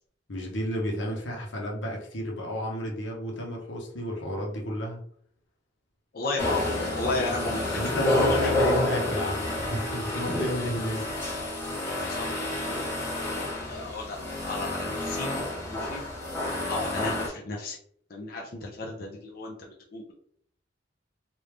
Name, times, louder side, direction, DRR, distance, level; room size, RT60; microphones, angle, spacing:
voice 1, 0.3-5.0 7.7-11.0 11.4-11.7, equal, 90° left, -1 dB, 1.0 m, -32 dB
voice 2, 6.1-6.7 7.0-8.5 10.8-10.9 11.7-12.8 13.6-15.4 15.7-16.0 16.7-17.8 18.1-20.1, left 2 dB, 55° left, -2 dB, 0.7 m, -34 dB
sound 1, 6.4-17.3, left 1 dB, 15° left, 1.2 m, -29 dB
3.4 x 2.6 x 3.2 m, 0.63 s
head